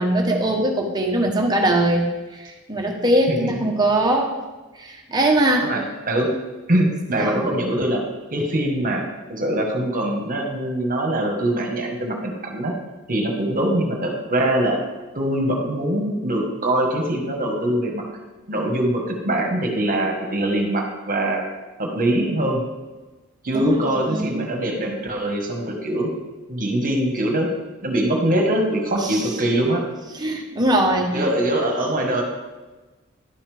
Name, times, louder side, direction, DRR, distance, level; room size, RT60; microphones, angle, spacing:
voice 1, 0.0-2.1 2.7-4.3 4.8-5.7 7.2-7.4 23.5-24.5 29.0-29.2 30.1-31.3, right 1 dB, 20° right, 0 dB, 1.2 m, -21 dB
voice 2, 3.3-3.7 5.6-6.3 6.7-8.0 8.3-9.0 9.3-12.7 13.1-14.8 15.1-18.1 18.5-21.5 21.8-22.6 23.4-26.1 26.5-27.5 27.8-29.8 31.1-32.2, right 1 dB, 40° right, 1 dB, 1.5 m, -23 dB
11.0 x 7.0 x 3.5 m, 1.2 s
head